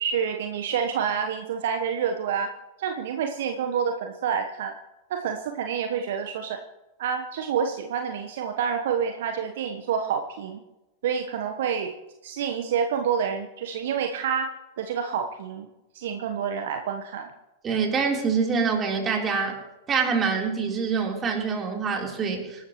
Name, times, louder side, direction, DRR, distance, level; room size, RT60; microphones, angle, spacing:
voice 1, 0.0-2.5 2.8-4.7 5.1-6.6 7.0-10.6 11.0-11.9 12.2-14.5 14.8-15.7 15.9-17.3, right 7 dB, 60° right, 5 dB, 1.2 m, -28 dB
voice 2, 17.6-19.6 19.9-22.6, right 5 dB, 25° right, 0 dB, 3.9 m, -25 dB
25.5 x 13.0 x 3.2 m, 1.0 s
figure-of-eight pair, 95°, 0 cm